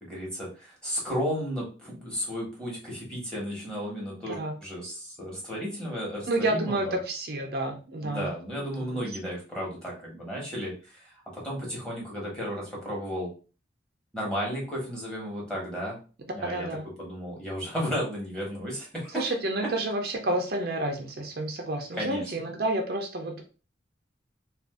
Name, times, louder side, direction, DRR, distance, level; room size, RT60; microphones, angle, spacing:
voice 1, 0.0-7.0 8.0-13.3 14.1-16.0 16.3-16.7 17.0-19.3 22.0-22.2, equal, 5° left, -4 dB, 1.2 m, -34 dB
voice 2, 6.3-8.3 8.8-9.2 16.4-16.9 19.1-23.4, right 2 dB, 55° right, 3 dB, 0.5 m, -30 dB
2.5 x 2.5 x 3.6 m, 0.35 s
head